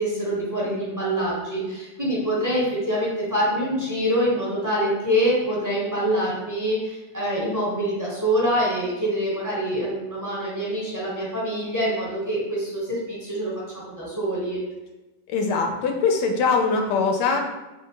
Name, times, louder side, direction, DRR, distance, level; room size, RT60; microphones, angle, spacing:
voice 1, 0.0-14.6, equal, 15° right, -7 dB, 0.9 m, -25 dB
voice 2, 15.3-17.4, left 4 dB, 75° left, 3 dB, 1.1 m, -22 dB
3.5 x 2.8 x 4.6 m, 1.1 s
omnidirectional pair, 2.0 m